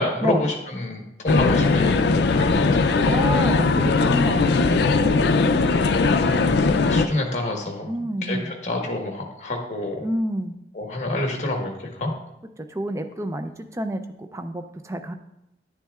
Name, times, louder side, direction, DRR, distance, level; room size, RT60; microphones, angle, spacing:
voice 1, 0.0-2.9 6.0-6.4 6.8-7.9 8.2-10.0 10.7-12.1, left 2 dB, 40° left, 2 dB, 1.2 m, -28 dB
sound 1, 1.3-7.1, left 4 dB, 75° left, 0.4 m, -19 dB
voice 2, 3.0-5.3 7.9-8.5 10.0-10.6 12.6-15.1, right 1 dB, 15° right, 8 dB, 0.4 m, -29 dB
10.0 x 7.1 x 2.4 m, 0.86 s
head